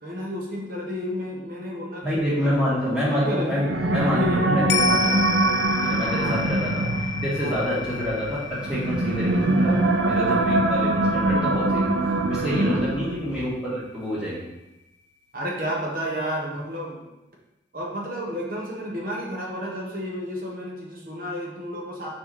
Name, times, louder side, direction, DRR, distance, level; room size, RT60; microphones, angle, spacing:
voice 1, 0.0-3.7 4.1-4.5 6.2-6.4 7.4-7.6 12.5-12.9 15.3-17.1 17.7-22.1, equal, 50° right, -2 dB, 1.4 m, -32 dB
voice 2, 2.0-5.5 5.8-9.8 10.1-14.5, equal, 5° right, -9 dB, 2.1 m, -27 dB
sound 1, 3.5-13.3, right 2 dB, 85° right, 0.5 m, -23 dB
sound 2, 4.7-13.3 13.6-13.7, left 5 dB, 70° left, 0.4 m, -32 dB
5.1 x 4.8 x 4.3 m, 0.97 s
head